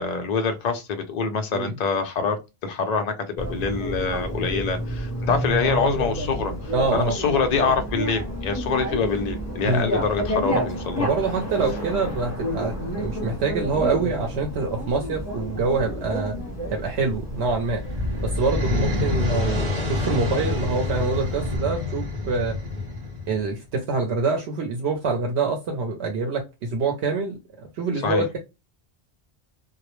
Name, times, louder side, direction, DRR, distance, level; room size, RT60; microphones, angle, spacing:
voice 1, 0.0-2.4 2.6-11.1 28.0-28.3, left 5 dB, 55° left, 0.5 m, -25 dB
Bicycle, 3.4-21.6, equal, 15° left, 0.8 m, -31 dB
voice 2, 6.7-7.1 9.6-9.9 11.0-16.4 16.7-17.8 18.2-22.6 23.3-28.4, right 4 dB, 80° right, 0.9 m, -25 dB
sound 1, 17.6-23.5, left 3 dB, 40° right, 0.9 m, -27 dB
2.2 x 2.0 x 2.9 m
omnidirectional pair, 1.1 m